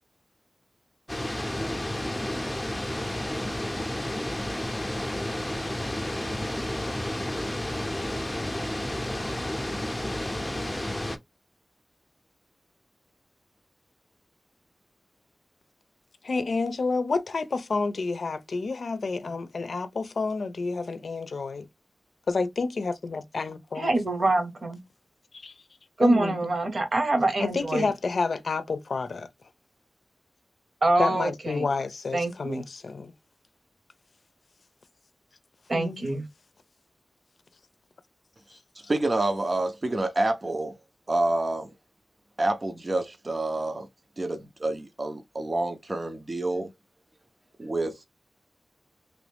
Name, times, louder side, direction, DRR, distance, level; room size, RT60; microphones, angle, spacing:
sound 1, 1.1-11.2, left 1 dB, 15° left, 0.6 m, -31 dB
voice 1, 16.2-21.7 22.3-23.9 25.3-25.5 26.0-26.6 27.4-29.3 31.0-33.1 35.7-36.1, left 4 dB, 85° left, 0.5 m, -29 dB
voice 2, 23.8-24.8 26.0-27.9 30.8-31.7 32.1-32.6 35.7-36.3, right 2 dB, 60° right, 1.1 m, -25 dB
voice 3, 38.9-40.7 41.1-41.7 42.4-43.9 44.2-46.7 47.6-48.0, right 2 dB, 40° right, 0.5 m, -28 dB
3.1 x 2.5 x 3.3 m
wide cardioid pair, 95°, 0 cm